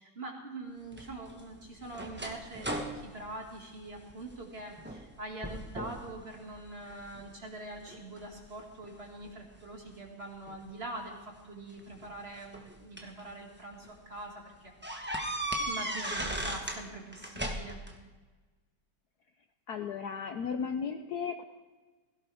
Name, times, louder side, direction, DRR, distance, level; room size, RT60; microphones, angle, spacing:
voice 1, 0.0-14.7 15.6-17.8, right 2 dB, 30° right, 0 dB, 2.3 m, -44 dB
sound 1, 0.9-4.4 4.8-5.1 5.4-6.1 6.5-7.3 7.9-9.3 10.5-10.6 11.8-13.2 13.7-13.9 14.2-14.3 14.8-16.8 17.1-17.9, right 1 dB, 10° right, 0.7 m, -37 dB
voice 2, 19.7-21.4, left 6 dB, 65° left, 7 dB, 1.0 m, -35 dB
17.0 x 16.0 x 3.5 m, 1.3 s
omnidirectional pair, 2.2 m